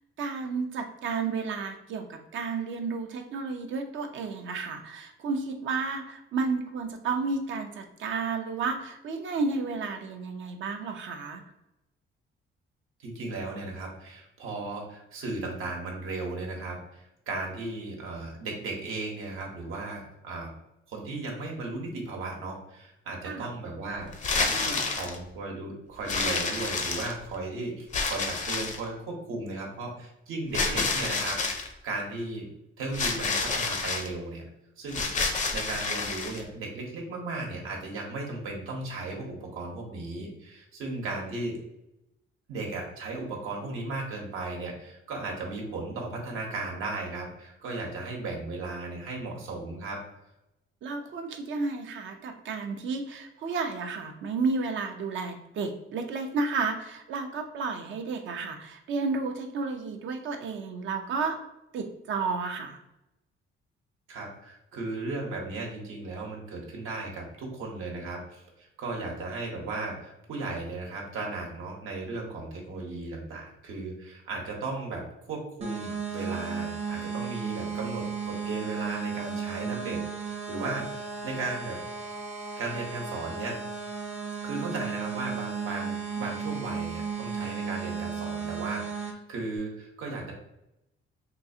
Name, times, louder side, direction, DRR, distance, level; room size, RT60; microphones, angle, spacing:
voice 1, 0.2-11.4 23.2-23.5 50.8-61.4 61.7-62.8, right 4 dB, 65° right, 4 dB, 0.5 m, -32 dB
voice 2, 13.0-20.5 20.9-32.5 32.8-34.4 34.8-41.6 42.5-50.0 64.1-75.0 75.3-81.8 82.6-83.6 84.4-90.3, right 3 dB, 80° right, -1 dB, 1.0 m, -36 dB
sound 1, 24.1-25.2 26.1-27.3 27.9-28.9 30.5-31.7 32.9-34.1 34.9-36.4, left 4 dB, 35° left, 0.5 m, -29 dB
sound 2, 75.6-89.1, right 6 dB, 30° right, 0.7 m, -34 dB
3.8 x 2.4 x 2.6 m, 0.88 s
cardioid pair, 135°, 21 cm